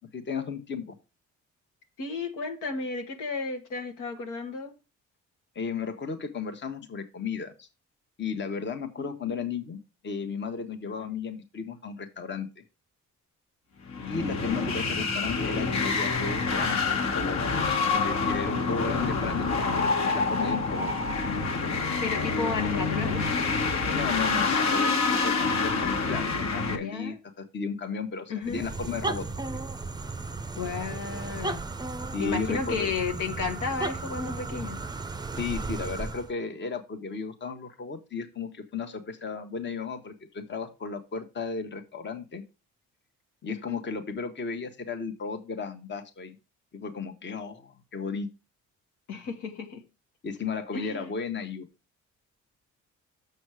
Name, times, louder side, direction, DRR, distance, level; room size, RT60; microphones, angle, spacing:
voice 1, 0.1-1.0 5.5-7.7 8.2-9.8 10.0-12.5 14.1-17.4 17.9-20.9 23.9-25.0 25.2-29.6 32.1-32.9 35.4-42.4 43.4-46.4 46.7-48.3 50.2-51.7, left 5 dB, 35° left, 1.1 m, -34 dB
voice 2, 2.0-4.7 9.0-9.4 10.8-11.1 14.0-14.3 19.0-19.7 22.0-23.4 26.7-27.2 28.3-28.6 30.5-31.6 32.2-34.8 43.5-43.8 49.1-49.8 50.7-51.1, left 5 dB, 90° left, 1.7 m, -33 dB
sound 1, 13.9-26.8, left 4 dB, 65° left, 1.7 m, -27 dB
sound 2, 28.4-36.3, right 3 dB, 15° right, 0.5 m, -35 dB
6.7 x 6.1 x 4.8 m
cardioid pair, 90°, 30 cm